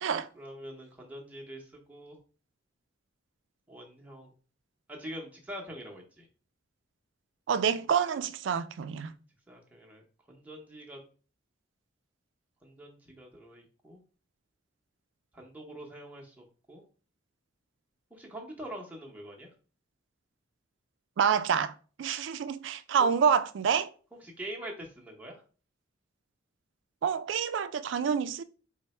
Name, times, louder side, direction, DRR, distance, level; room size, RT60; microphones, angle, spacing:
voice 1, 0.3-2.2 3.7-4.3 4.9-6.3 9.5-11.0 12.6-14.0 15.3-16.8 18.1-19.5 23.0-23.1 24.2-25.4, right 1 dB, 10° right, 0.7 m, -44 dB
voice 2, 7.5-9.1 21.2-21.7 22.0-23.9 27.0-28.4, right 7 dB, 65° right, 0.3 m, -27 dB
4.4 x 2.1 x 4.1 m
head